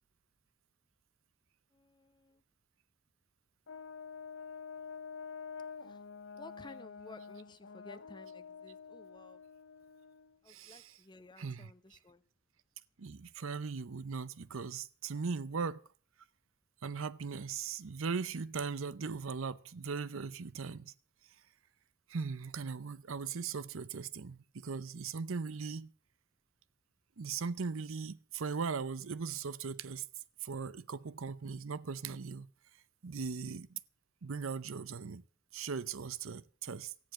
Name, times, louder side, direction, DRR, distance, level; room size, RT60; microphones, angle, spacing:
voice 1, 1.7-2.4 5.8-6.0 6.3-9.4 10.4-12.2, left 2 dB, 20° left, 0.8 m, -55 dB
Brass instrument, 3.7-10.4, left 5 dB, 65° left, 0.7 m, -48 dB
voice 2, 10.5-11.0 11.4-11.7 13.0-15.8 16.8-20.9 22.1-25.9 27.2-30.0 30.4-32.5 33.0-33.8 34.2-35.2 35.5-37.1, right 5 dB, 70° right, 0.6 m, -39 dB
14.0 x 9.9 x 7.5 m
head